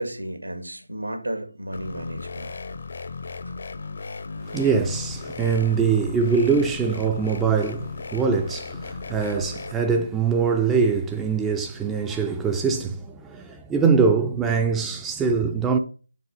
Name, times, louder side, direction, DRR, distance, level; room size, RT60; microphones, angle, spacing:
voice 1, 0.0-2.5, right 1 dB, 85° right, 1.9 m, -32 dB
sound 1, 1.7-9.7, left 4 dB, 50° left, 0.7 m, -36 dB
voice 2, 4.5-15.8, right 5 dB, 5° right, 0.4 m, -23 dB
6.7 x 3.9 x 6.5 m
figure-of-eight pair, 155°, 0 cm